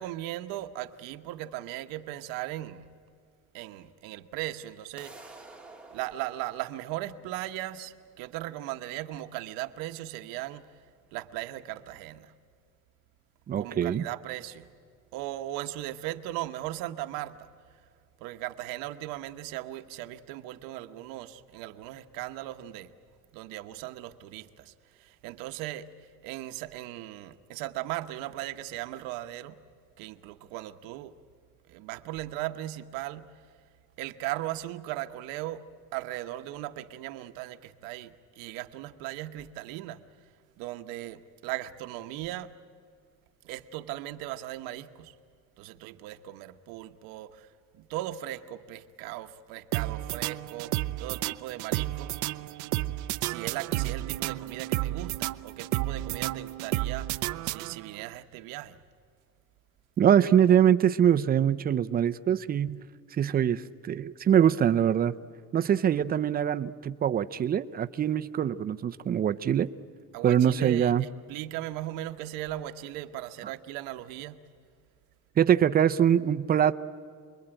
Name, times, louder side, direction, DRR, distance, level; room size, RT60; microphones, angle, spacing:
voice 1, 0.0-2.9 3.5-5.3 5.9-10.7 11.1-12.3 13.6-14.7 15.1-17.5 18.2-22.9 23.3-25.9 26.2-29.6 30.0-31.2 31.7-33.3 34.0-40.0 40.6-42.5 43.4-45.2 45.6-52.1 53.2-58.8 70.1-74.4, right 15 dB, 85° right, 1.2 m, -38 dB
sound 1, 5.0-10.9, right 3 dB, 5° right, 1.3 m, -53 dB
voice 2, 13.5-14.0 60.0-62.8 63.1-65.1 65.5-69.7 70.2-71.0 75.4-76.7, right 9 dB, 25° right, 0.6 m, -23 dB
sound 2, 49.7-58.0, right 16 dB, 60° right, 0.7 m, -32 dB
28.5 x 22.0 x 9.0 m
cardioid pair, 150°, 34 cm